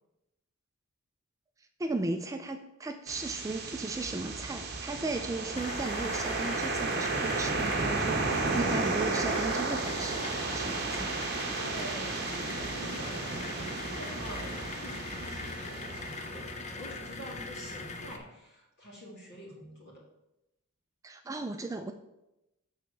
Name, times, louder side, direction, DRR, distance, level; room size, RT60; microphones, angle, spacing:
voice 1, 1.8-11.2 21.0-21.9, right 2 dB, 15° right, 6 dB, 0.3 m, -36 dB
sound 1, 3.1-16.9, right 3 dB, 45° right, 1.2 m, -33 dB
sound 2, 5.6-18.2, left 3 dB, 30° left, 0.6 m, -41 dB
voice 2, 11.6-20.0, equal, 50° left, -3 dB, 2.3 m, -46 dB
6.4 x 3.8 x 6.3 m, 0.91 s
head